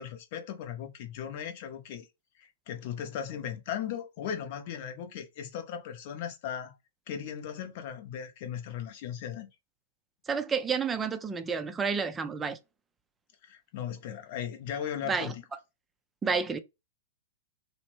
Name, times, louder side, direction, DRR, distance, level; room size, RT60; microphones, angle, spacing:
voice 1, 0.0-2.1 2.4-6.7 7.1-9.5 13.4-15.4, left 9 dB, 50° left, 0.7 m, -37 dB
voice 2, 10.3-12.6 15.1-15.3 16.2-16.6, right 5 dB, 15° right, 0.4 m, -30 dB
2.9 x 2.0 x 3.1 m
figure-of-eight pair, 110°, 0 cm